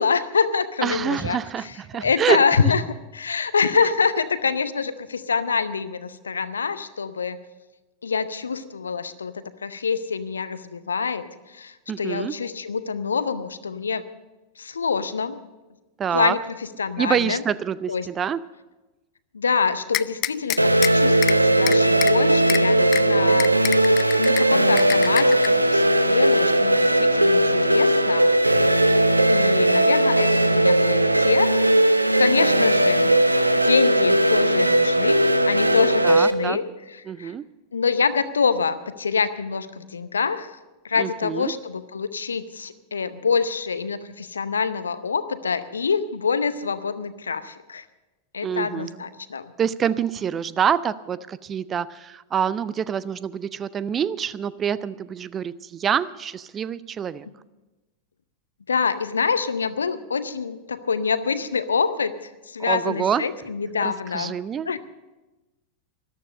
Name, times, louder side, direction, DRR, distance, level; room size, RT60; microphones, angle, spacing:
voice 1, 0.0-2.8 3.1-7.4 8.0-14.1 14.6-15.4 16.1-17.4 17.9-18.1 19.3-23.5 23.9-28.3 29.3-31.5 31.8-33.1 33.6-37.3 37.7-40.6 40.8-47.8 48.3-49.5 57.2-57.3 58.7-62.1 62.5-64.3 64.7-64.8, left 5 dB, 70° left, 13 dB, 0.7 m, -26 dB
voice 2, 0.8-2.7 11.9-12.3 16.0-16.4 17.0-18.4 22.7-23.4 36.0-36.6 37.1-37.4 41.0-41.5 48.4-49.0 49.6-57.3 62.7-63.2 63.8-64.8, right 8 dB, 25° right, 18 dB, 0.4 m, -26 dB
sound 1, 19.9-20.9 21.2-21.3 21.7-22.1 22.5-22.6 22.9-23.0 23.4-24.4 24.8-25.5, left 16 dB, 35° left, 0.4 m, -26 dB
sound 2, 20.6-36.3, right 1 dB, 85° right, 0.6 m, -18 dB
13.5 x 12.5 x 6.5 m, 1.1 s
figure-of-eight pair, 90°, 0 cm